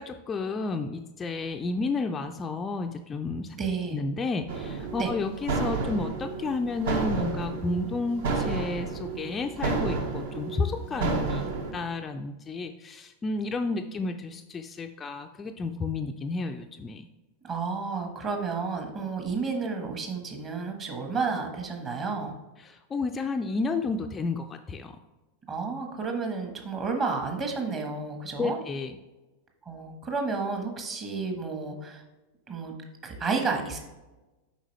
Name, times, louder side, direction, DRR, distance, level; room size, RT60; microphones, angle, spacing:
voice 1, 0.0-3.6 3.9-17.1 22.6-25.0 28.4-29.0, left 3 dB, 20° left, 6 dB, 0.3 m, -31 dB
voice 2, 3.5-4.0 5.0-5.1 17.4-22.4 25.5-28.6 29.7-32.0 32.5-32.7 33.0-33.8, right 4 dB, 30° right, 3 dB, 1.3 m, -31 dB
sound 1, 4.5-11.7, right 4 dB, 55° right, 0.8 m, -31 dB
7.2 x 5.1 x 3.1 m, 1.1 s
figure-of-eight pair, 90°, 0 cm